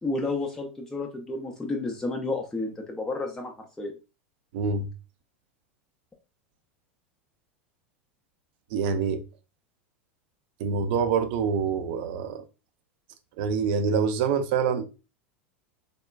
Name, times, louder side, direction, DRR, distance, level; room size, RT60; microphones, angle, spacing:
voice 1, 0.0-3.9, left 2 dB, 10° left, 0.5 m, -31 dB
voice 2, 4.5-4.9 8.7-9.2 10.6-12.4 13.4-14.9, right 6 dB, 50° right, 0.4 m, -26 dB
3.5 x 2.1 x 2.2 m
figure-of-eight pair, 85°, 7 cm